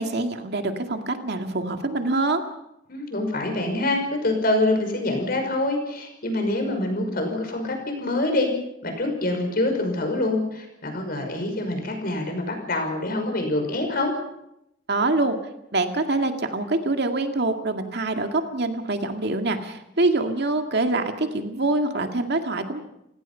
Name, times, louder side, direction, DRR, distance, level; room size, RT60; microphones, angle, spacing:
voice 1, 0.0-2.4 14.9-15.4 15.7-22.8, right 2 dB, 60° right, 5 dB, 2.2 m, -25 dB
voice 2, 2.9-8.5 8.8-14.1, left 2 dB, 55° left, 4 dB, 5.8 m, -25 dB
30.0 x 17.0 x 5.7 m, 0.83 s
head